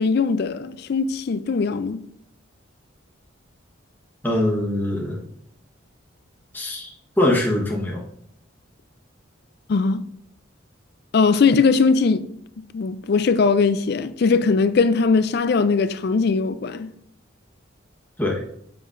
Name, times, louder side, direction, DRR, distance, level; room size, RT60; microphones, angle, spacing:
voice 1, 0.0-2.0 9.7-10.0 11.1-12.2 12.7-16.9, left 4 dB, 50° left, 0.4 m, -20 dB
voice 2, 4.2-5.2 6.5-6.9 7.2-8.0 18.2-18.4, left 1 dB, 10° left, 1.1 m, -22 dB
7.6 x 6.8 x 2.5 m
head